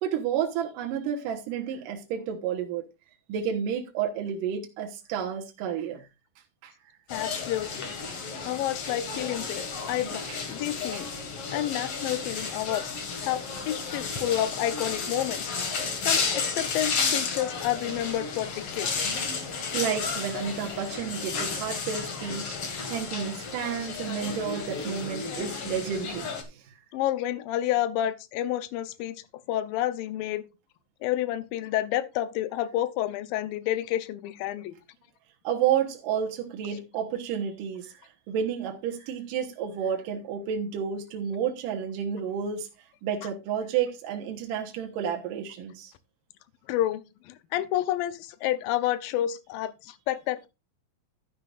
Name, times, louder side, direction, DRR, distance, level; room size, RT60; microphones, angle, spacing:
voice 1, 0.0-2.8 3.3-6.1 6.6-6.7 7.3-7.5 8.1-8.2 9.5-9.6 10.3-10.4 10.9-11.0 11.8-11.9 12.4-12.5 16.0-16.1 19.7-26.6 35.4-37.9 38.3-42.7 43.0-45.9, right 8 dB, 75° right, 2.8 m, -31 dB
voice 2, 7.1-7.8 8.5-11.1 11.5-13.0 13.2-19.1 26.9-29.1 29.5-30.4 31.0-34.7 46.7-50.5, left 13 dB, 80° left, 2.6 m, -30 dB
sound 1, 7.1-26.4, left 5 dB, 45° left, 2.6 m, -32 dB
12.0 x 10.5 x 2.5 m
omnidirectional pair, 4.1 m